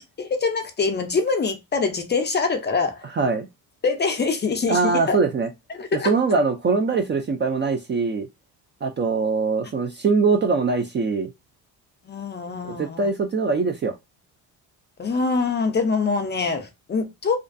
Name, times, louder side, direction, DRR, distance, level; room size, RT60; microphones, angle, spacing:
voice 1, 0.2-3.0 3.8-5.2 5.8-6.1 12.1-13.1 15.0-17.4, left 4 dB, 25° left, 0.5 m, -24 dB
voice 2, 3.1-3.5 4.7-5.5 5.9-8.3 8.8-11.3 12.6-13.9, right 4 dB, 30° right, 0.3 m, -22 dB
2.4 x 2.2 x 2.5 m
cardioid pair, 115°, 39 cm